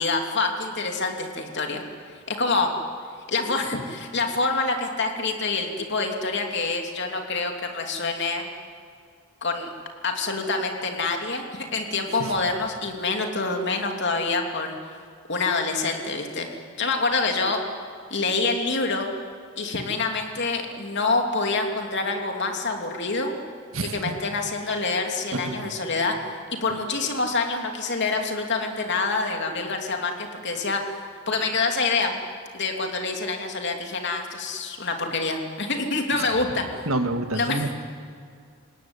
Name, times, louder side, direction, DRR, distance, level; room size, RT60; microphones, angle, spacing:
voice 1, 0.0-1.8 2.3-2.7 3.3-8.4 9.4-9.7 10.0-11.4 11.7-15.0 15.3-16.5 16.8-17.6 18.1-19.1 19.6-23.4 23.9-26.1 26.5-30.8 31.3-32.2 32.5-36.6 37.3-37.6, left 3 dB, 55° left, 3 dB, 3.0 m, -26 dB
voice 2, 23.7-24.2 25.3-25.7 36.9-37.8, right 2 dB, 80° right, 6 dB, 2.0 m, -28 dB
28.5 x 18.0 x 9.9 m, 2.2 s
head